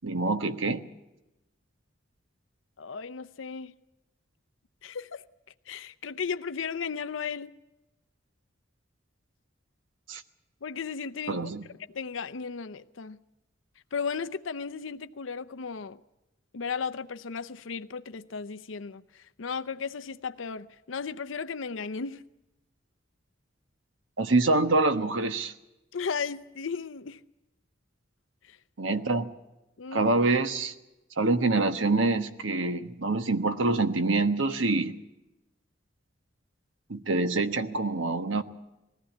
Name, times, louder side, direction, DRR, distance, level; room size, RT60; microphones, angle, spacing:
voice 1, 0.0-0.8 10.1-10.2 11.3-11.6 24.2-25.5 28.8-29.3 29.9-30.7 31.2-34.9 36.9-38.4, right 3 dB, 80° right, 1.2 m, -25 dB
voice 2, 2.8-3.7 4.8-5.2 5.7-7.5 10.6-11.4 11.9-13.2 13.9-16.0 16.5-22.2 25.9-27.2 28.4-28.6 29.8-30.2, left 5 dB, 80° left, 0.6 m, -35 dB
20.5 x 15.5 x 8.5 m
head